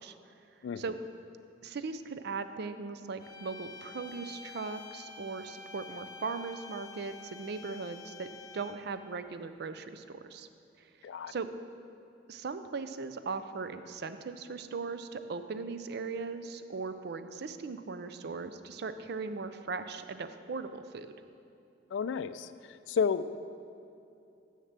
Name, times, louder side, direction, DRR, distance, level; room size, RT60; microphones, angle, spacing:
voice 1, 1.6-8.3 8.5-10.5 11.3-11.5 12.3-21.1, right 4 dB, 60° right, 11 dB, 0.4 m, -38 dB
sound 1, 3.2-8.9, left 5 dB, 20° left, 0.6 m, -48 dB
voice 2, 21.9-22.5 22.9-23.4, left 6 dB, 75° left, 14 dB, 0.3 m, -31 dB
6.6 x 6.5 x 7.3 m, 2.7 s
head